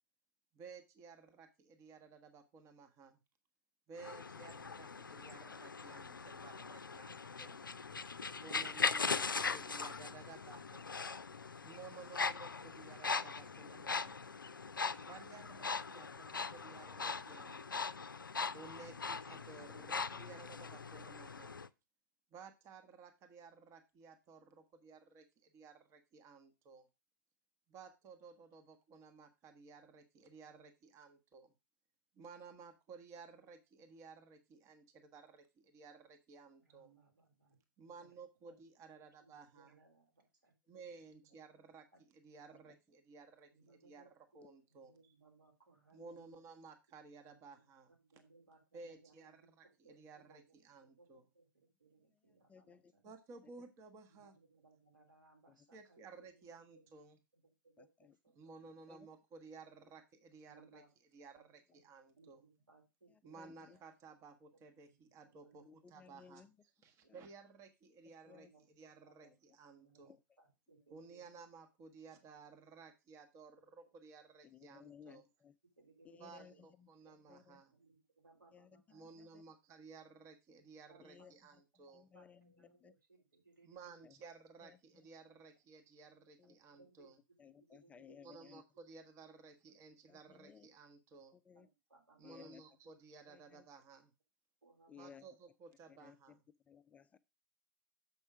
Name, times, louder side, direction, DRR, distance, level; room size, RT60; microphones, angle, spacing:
voice 1, 0.5-3.2 3.9-7.6 8.4-10.9 11.6-14.3 15.0-17.9 18.5-21.6 22.3-26.9 27.7-31.5 32.1-36.9 37.8-39.7 40.7-41.9 42.2-43.5 43.8-45.1 45.9-47.9 48.7-51.2 53.0-54.3 55.7-57.2 58.3-60.8 61.1-62.4 63.2-66.5 66.8-68.5 68.8-70.2 70.9-75.2 76.2-77.7 78.9-82.0 83.6-87.2 88.2-91.3 92.2-94.1 95.0-96.4, right 4 dB, 30° right, 8 dB, 1.0 m, -56 dB
sound 1, 4.0-21.7, left 5 dB, 85° left, 0.4 m, -40 dB
voice 2, 36.6-38.1 38.4-38.6 39.2-40.5 40.9-41.3 41.9-42.0 43.5-44.4 44.7-46.4 47.2-53.0 54.1-56.9 57.3-58.8 60.4-60.9 61.3-61.5 62.2-63.9 64.5-64.6 65.0-65.7 67.0-67.1 68.3-68.6 69.0-69.4 69.7-70.1 70.4-71.4 72.3-72.6 75.0-75.2 75.8-76.6 77.0-79.4 80.9-81.3 82.1-84.1 85.3-85.4 86.7-88.6 89.2-89.3 91.5-92.8 93.3-93.6 94.6-95.1, right 3 dB, 80° right, 0 dB, 3.3 m, -67 dB
voice 3, 52.5-52.9 57.8-58.1 58.9-59.1 63.4-63.8 65.7-66.5 67.1-67.2 68.3-68.5 69.2-69.4 70.0-70.2 74.4-75.5 76.0-76.9 77.3-77.6 78.5-79.4 81.0-81.3 81.9-82.9 84.0-84.1 84.6-84.8 86.4-86.6 87.4-88.6 90.1-90.7 91.3-91.7 92.2-92.6 93.3-93.6 94.9-95.2 95.9-96.2 96.7-97.2, left 7 dB, 15° left, 11 dB, 0.3 m, -59 dB
7.1 x 5.4 x 4.7 m, 0.26 s
figure-of-eight pair, 105°, 11 cm